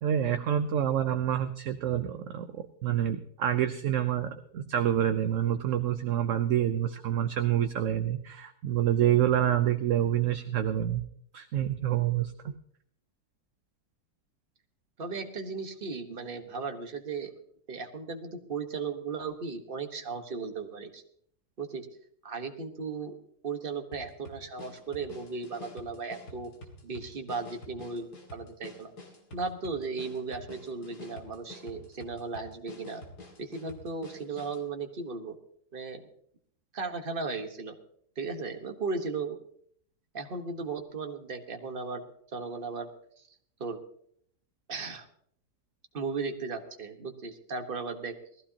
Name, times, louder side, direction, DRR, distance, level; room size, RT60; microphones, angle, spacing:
voice 1, 0.0-11.0 11.3-12.5, right 10 dB, 60° right, 8 dB, 0.9 m, -27 dB
voice 2, 15.0-17.3 17.7-21.0 21.6-21.9 22.2-23.1 23.4-26.5 26.8-28.9 29.3-33.0 33.4-35.4 35.7-36.0 36.7-37.7 38.2-39.4 40.1-42.9 43.2-43.3 43.6-43.8 44.7-45.1 45.9-48.1, right 4 dB, 35° right, 5 dB, 1.4 m, -36 dB
sound 1, 23.9-34.7, left 1 dB, 75° left, 2.8 m, -48 dB
20.0 x 14.5 x 2.9 m, 0.65 s
omnidirectional pair, 1.7 m